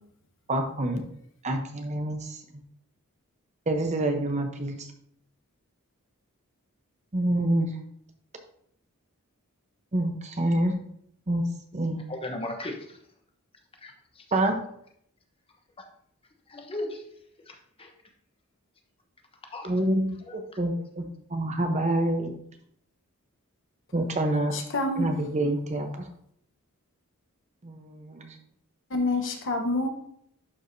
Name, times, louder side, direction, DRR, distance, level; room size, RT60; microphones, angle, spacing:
voice 1, 0.5-1.0 1.4-2.4 3.7-4.9 7.1-7.7 9.9-10.7 11.3-11.4 11.7-12.0 14.3-14.6 19.6-21.0 21.3-22.3 23.9-24.5 25.0-26.0 27.6-28.3, right 1 dB, 30° right, 5 dB, 0.9 m, -27 dB
voice 2, 12.1-13.0 13.8-13.9 14.3-14.4 15.8-15.9 16.5-17.0 17.5-17.9 19.5-19.7 20.2-20.5, left 1 dB, 25° left, 4 dB, 1.0 m, -36 dB
voice 3, 24.5-25.1 28.9-29.9, left 2 dB, 60° left, 4 dB, 1.1 m, -27 dB
11.5 x 4.7 x 2.7 m, 0.68 s
head